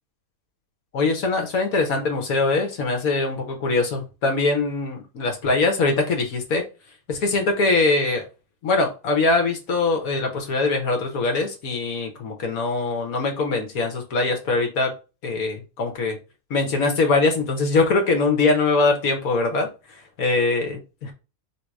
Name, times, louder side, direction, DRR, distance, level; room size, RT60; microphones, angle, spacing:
voice 1, 0.9-6.6 7.1-8.3 8.6-14.9 15.2-16.2 16.5-19.7 20.2-21.1, left 3 dB, 75° left, 3 dB, 1.6 m, -22 dB
3.6 x 2.9 x 4.7 m, 0.30 s
omnidirectional pair, 1.5 m